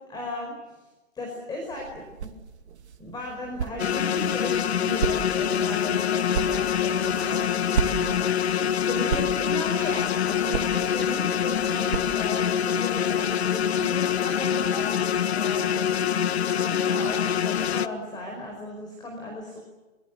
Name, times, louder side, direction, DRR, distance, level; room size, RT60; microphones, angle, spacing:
voice 1, 0.1-0.5 1.1-2.3 3.0-15.7 16.5-19.6, left 1 dB, 10° left, 1 dB, 4.9 m, -36 dB
sound 1, 1.6-12.6, right 7 dB, 55° right, 2.6 m, -35 dB
sound 2, 3.8-17.9, left 8 dB, 55° left, 1.1 m, -25 dB
28.0 x 22.5 x 7.9 m, 1.1 s
hypercardioid pair, 140°, 39 cm